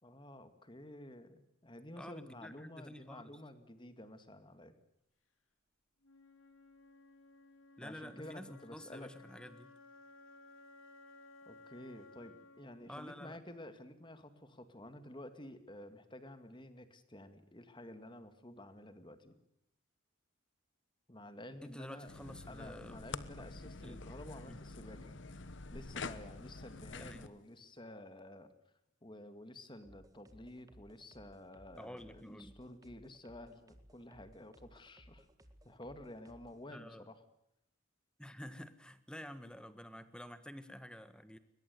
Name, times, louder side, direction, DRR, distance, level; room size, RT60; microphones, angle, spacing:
voice 1, 0.0-4.8 7.8-9.1 11.5-19.4 21.1-22.1 22.5-25.2 25.7-28.5 29.0-35.3 35.6-37.2, left 1 dB, 25° left, 10 dB, 2.1 m, -51 dB
voice 2, 2.0-3.4 7.8-9.7 12.9-13.4 21.6-23.1 23.8-24.1 24.5-24.6 27.0-27.4 31.8-32.5 36.7-37.1 38.2-41.4, equal, 5° left, 12 dB, 1.5 m, -50 dB
Wind instrument woodwind instrument, 6.0-14.0, left 2 dB, 80° left, 3.3 m, -59 dB
sound 1, 22.1-27.3, left 3 dB, 60° left, 1.1 m, -47 dB
sound 2, 29.8-36.6, equal, 15° right, 1.8 m, -62 dB
21.5 x 21.5 x 9.5 m, 0.75 s
head